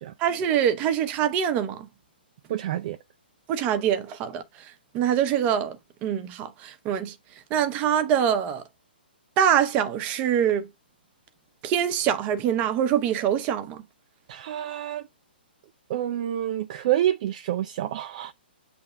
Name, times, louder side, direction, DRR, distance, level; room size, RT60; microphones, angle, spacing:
voice 1, 0.2-1.9 3.5-5.8 6.0-7.1 7.5-8.6 9.4-10.7 11.6-13.8, right 9 dB, 25° right, 0.9 m, -24 dB
voice 2, 2.5-3.0 14.3-15.1 15.9-18.3, right 12 dB, 45° right, 0.5 m, -28 dB
7.6 x 3.4 x 3.7 m
hypercardioid pair, 145°, 6 cm